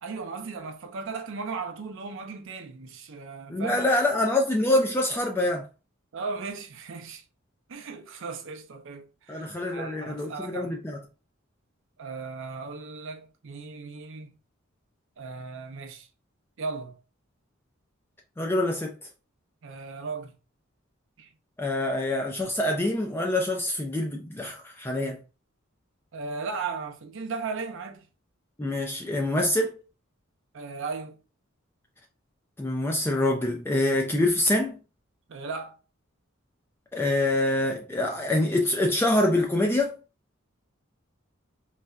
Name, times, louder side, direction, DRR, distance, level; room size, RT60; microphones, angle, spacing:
voice 1, 0.0-3.9 6.1-7.2 7.7-10.7 12.0-14.3 15.2-16.1 16.6-17.0 19.6-20.3 21.2-21.3 26.1-28.0 30.5-31.2 35.3-35.8, right 4 dB, 65° right, 0.5 m, -36 dB
voice 2, 3.5-5.6 9.3-11.0 18.4-18.9 21.6-25.2 28.6-29.7 32.6-34.8 36.9-39.9, left 1 dB, 10° left, 0.3 m, -25 dB
3.9 x 2.1 x 2.3 m
head